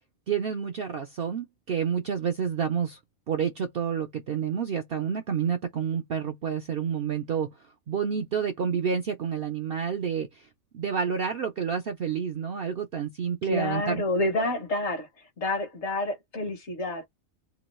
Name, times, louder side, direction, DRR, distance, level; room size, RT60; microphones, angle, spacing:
voice 1, 0.3-3.0 3.3-10.5 10.7-14.0, right 7 dB, 65° right, 0.5 m, -29 dB
voice 2, 13.4-17.1, left 1 dB, 55° left, 1.1 m, -29 dB
2.9 x 2.3 x 3.0 m
omnidirectional pair, 1.5 m